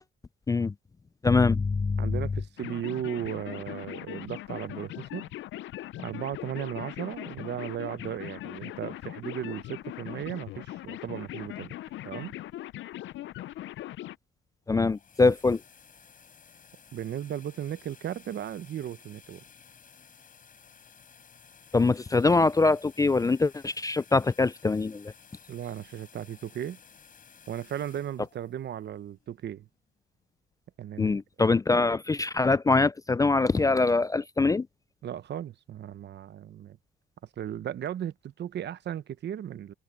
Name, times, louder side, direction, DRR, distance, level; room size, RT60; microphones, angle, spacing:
voice 1, 1.2-2.2 14.7-15.6 21.7-25.1 31.0-34.7, left 3 dB, 15° left, 0.4 m, -23 dB
voice 2, 2.0-5.3 6.0-11.7 12.0-12.3 16.9-19.4 25.5-26.8 27.5-29.7 30.8-31.2 31.5-31.6 35.0-36.8 37.4-39.7, right 10 dB, 60° right, 0.9 m, -36 dB
sound 1, 2.6-14.2, left 14 dB, 75° left, 0.5 m, -40 dB
sound 2, 14.6-29.5, left 6 dB, 45° left, 4.4 m, -55 dB
cardioid pair, 90°, 20 cm